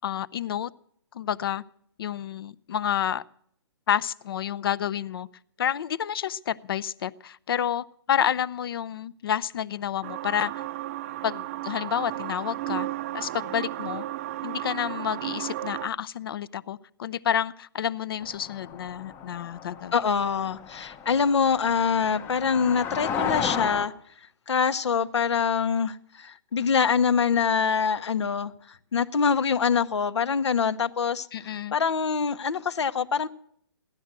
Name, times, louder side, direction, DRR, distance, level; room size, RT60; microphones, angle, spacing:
voice 1, 0.0-0.7 1.1-1.6 2.0-3.2 3.9-5.3 5.6-10.5 11.2-12.9 13.1-14.0 14.4-19.9 31.3-31.7, left 9 dB, 55° left, 0.6 m, -29 dB
sound 1, 10.0-15.9, right 15 dB, 30° right, 0.5 m, -34 dB
sound 2, 18.2-23.9, left 7 dB, 15° left, 0.7 m, -34 dB
voice 2, 19.9-23.9 24.5-33.3, left 6 dB, 75° left, 1.0 m, -25 dB
16.0 x 11.5 x 7.5 m
hypercardioid pair, 155°, 14 cm